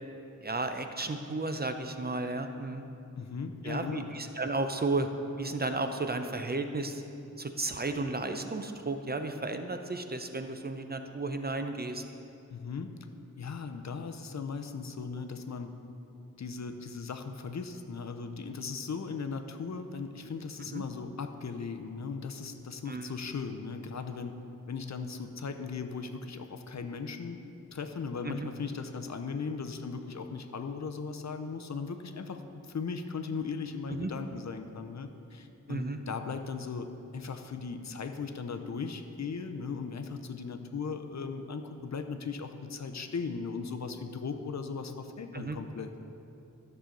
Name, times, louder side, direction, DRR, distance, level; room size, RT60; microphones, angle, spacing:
voice 1, 0.4-2.9 3.6-5.1 5.4-7.0 7.4-12.0 20.7-20.8 22.9-23.2 28.2-28.5 33.9-34.1 35.7-36.0 45.3-45.6, right 2 dB, 30° right, 7 dB, 0.5 m, -33 dB
voice 2, 3.2-4.1 12.5-12.9 13.4-15.7 16.4-24.3 24.7-27.4 27.7-32.4 32.7-45.9, left 5 dB, 55° left, 7 dB, 0.6 m, -38 dB
13.0 x 6.8 x 3.8 m, 2.8 s
wide cardioid pair, 100°, 32 cm